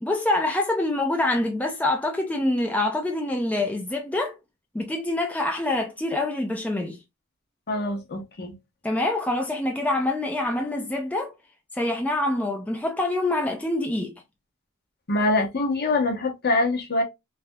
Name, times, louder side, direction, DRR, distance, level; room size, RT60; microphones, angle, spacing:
voice 1, 0.0-4.4 4.7-7.0 8.8-11.3 11.7-14.2, left 2 dB, 5° left, 0.4 m, -25 dB
voice 2, 7.7-8.5 15.1-17.0, left 2 dB, 50° left, 0.9 m, -24 dB
3.3 x 2.6 x 2.2 m
head